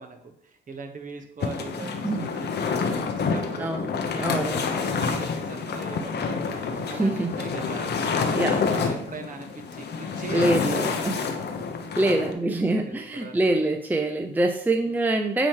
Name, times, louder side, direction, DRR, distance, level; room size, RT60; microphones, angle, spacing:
voice 1, 0.0-3.8 4.1-6.6 6.9-11.4 12.1-13.6 14.8-14.9, right 3 dB, 40° right, 4 dB, 1.2 m, -41 dB
sound 1, 1.4-12.3, left 5 dB, 55° left, 0.9 m, -28 dB
voice 2, 1.8-2.3 3.6-3.9 4.2-4.7 7.0-7.3 8.3-8.6 10.3-11.2 12.0-15.5, right 2 dB, 10° right, 4 dB, 0.5 m, -25 dB
8.8 x 3.1 x 4.8 m, 0.68 s
cardioid pair, 90°, 20 cm